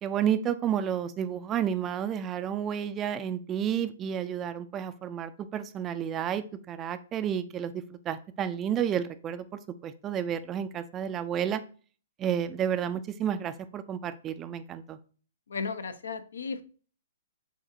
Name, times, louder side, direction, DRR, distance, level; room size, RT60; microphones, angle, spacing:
voice 1, 0.0-11.6 12.2-15.0, right 9 dB, 20° right, 11 dB, 0.4 m, -31 dB
voice 2, 15.5-16.6, left 5 dB, 70° left, 10 dB, 0.6 m, -35 dB
7.0 x 2.6 x 2.6 m, 0.39 s
figure-of-eight pair, 120°, 0 cm